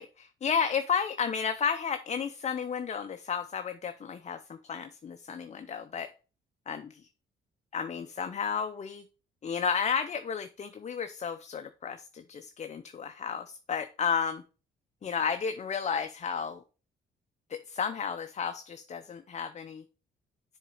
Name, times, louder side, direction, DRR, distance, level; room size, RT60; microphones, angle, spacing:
voice 1, 0.0-6.1 6.7-6.9 7.7-9.0 9.4-14.4 15.0-16.6 17.5-19.8, left 6 dB, 35° left, 8 dB, 0.6 m, -32 dB
7.2 x 4.0 x 4.8 m, 0.35 s
cardioid pair, 90°, 20 cm